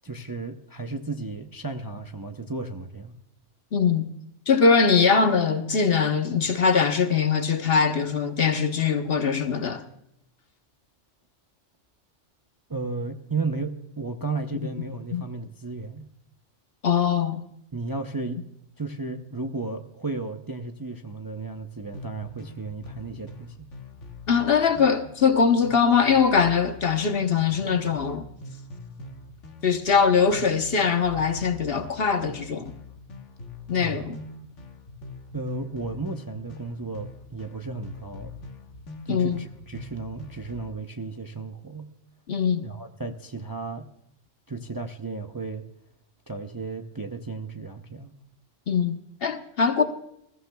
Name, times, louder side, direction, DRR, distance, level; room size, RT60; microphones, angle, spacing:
voice 1, 0.0-3.2 12.7-16.1 17.7-18.4 18.8-23.7 33.8-34.1 35.3-38.3 39.0-41.9 42.6-43.9 44.5-45.6 46.3-48.1, right 3 dB, 25° right, 0.6 m, -34 dB
voice 2, 3.7-4.1 4.5-9.8 15.1-15.2 16.8-17.4 24.3-28.2 29.6-32.7 33.7-34.2 39.1-39.4 42.3-42.7 48.7-49.8, left 6 dB, 55° left, 1.2 m, -22 dB
sound 1, 21.9-40.8, left 2 dB, 75° left, 1.6 m, -43 dB
21.0 x 15.0 x 2.3 m
omnidirectional pair, 1.2 m